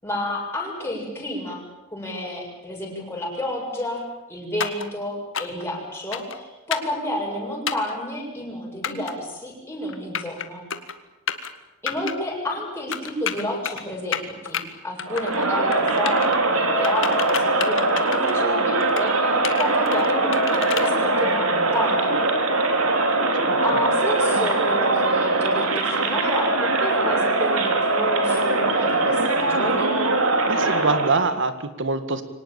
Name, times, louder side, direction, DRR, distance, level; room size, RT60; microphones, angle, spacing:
voice 1, 0.0-1.6 1.9-4.0 4.3-10.6 11.8-22.2 23.6-29.9, left 1 dB, 10° left, -2 dB, 7.7 m, -30 dB
sound 1, 4.6-4.9 5.3-5.6 6.1-6.4 6.7-6.9 7.7-7.9 8.8-9.1 9.9-10.4 10.7-10.9 11.3-11.5 11.9-12.1 12.9-13.8 14.1-14.6 15.0-15.5 15.7-16.4 16.8-18.4 18.8-19.1 19.4-20.9, left 8 dB, 65° left, 1.8 m, -29 dB
Crowd, 15.1-31.4, right 2 dB, 85° right, 3.7 m, -21 dB
voice 2, 23.4-23.8 24.3-24.5 30.5-32.2, right 3 dB, 60° right, 11 dB, 2.0 m, -25 dB
24.5 x 18.5 x 9.0 m, 1.0 s
head